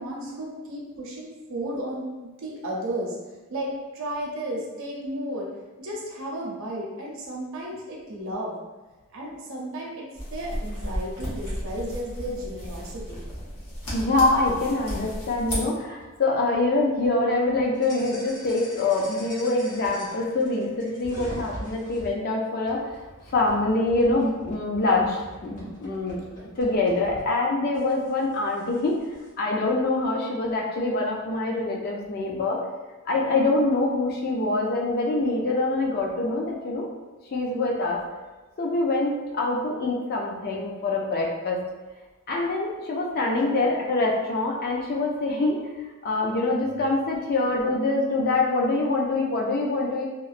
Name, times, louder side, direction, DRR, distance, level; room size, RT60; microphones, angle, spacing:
voice 1, 0.0-3.1 3.5-5.5 5.8-8.6 9.1-13.2 43.4-43.5, right 1 dB, 60° right, -3 dB, 0.6 m, -33 dB
sound 1, 10.2-15.6, equal, 90° left, 1.0 m, -34 dB
sound 2, 13.7-22.1 22.7-27.3 27.7-29.3, equal, 70° left, 1.3 m, -44 dB
voice 2, 13.9-22.9 23.3-26.2 26.6-29.0 29.4-32.6 33.1-36.9 37.3-38.0 38.6-41.6 42.3-45.7 46.0-50.1, left 2 dB, 45° left, -1 dB, 0.4 m, -25 dB
2.9 x 2.1 x 2.4 m, 1.2 s
head